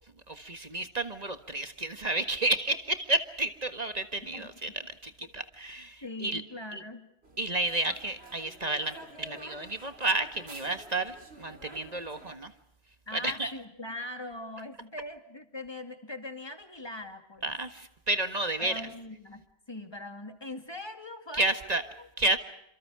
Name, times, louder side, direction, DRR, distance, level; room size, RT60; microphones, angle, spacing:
voice 1, 0.3-6.4 6.7-6.8 7.4-12.5 13.1-13.5 17.4-18.9 21.3-21.8 22.2-22.4, right 2 dB, 40° right, 9 dB, 1.7 m, -31 dB
voice 2, 6.0-7.0 13.1-17.5 18.6-22.1, left 2 dB, 25° left, 7 dB, 2.4 m, -41 dB
sound 1, 7.2-12.4, right 2 dB, 70° right, 3.6 m, -50 dB
29.5 x 26.5 x 4.9 m, 0.79 s
omnidirectional pair, 1.1 m